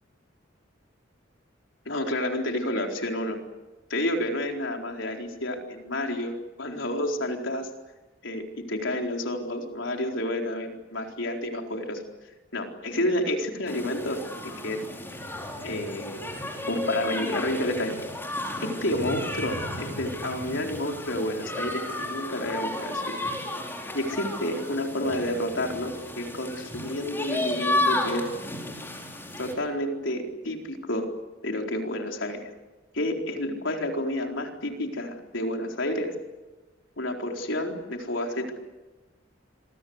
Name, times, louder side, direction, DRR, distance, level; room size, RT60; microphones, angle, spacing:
voice 1, 1.9-3.4 3.9-6.3 6.6-7.7 8.2-12.0 12.5-14.8 15.6-16.2 16.6-17.9 18.6-23.2 23.9-28.3 29.4-31.1 31.4-32.5 32.9-36.1 37.0-38.5, left 1 dB, 80° left, 2 dB, 4.3 m, -30 dB
sound 1, 13.7-29.5, left 1 dB, 10° left, 4.8 m, -33 dB
27.0 x 23.0 x 8.1 m, 1.1 s
head